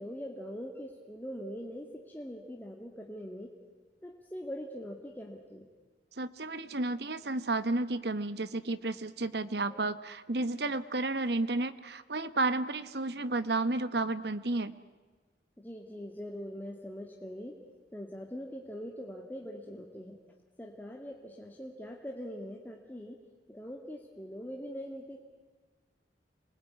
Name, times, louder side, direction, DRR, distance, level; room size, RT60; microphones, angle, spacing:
voice 1, 0.0-3.5 4.0-5.6 9.7-9.8 15.6-17.5 17.9-20.2 20.6-23.2 23.5-25.2, equal, 10° left, 1 dB, 1.9 m, -42 dB
voice 2, 6.2-14.7, right 2 dB, 70° right, 13 dB, 1.2 m, -32 dB
26.5 x 21.0 x 9.4 m, 1.4 s
head